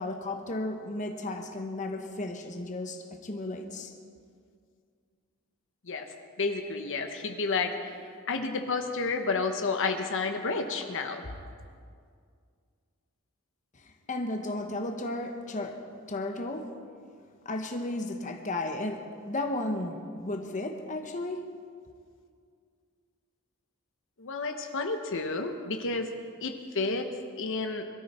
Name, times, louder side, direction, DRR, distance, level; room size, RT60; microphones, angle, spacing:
voice 1, 0.0-3.9 13.7-16.7 17.4-21.5, left 2 dB, 35° left, 1.1 m, -34 dB
voice 2, 6.4-7.9 8.3-11.2 24.2-26.1 26.4-27.1 27.4-27.8, left 4 dB, 60° left, 1.1 m, -30 dB
22.5 x 13.0 x 4.4 m
head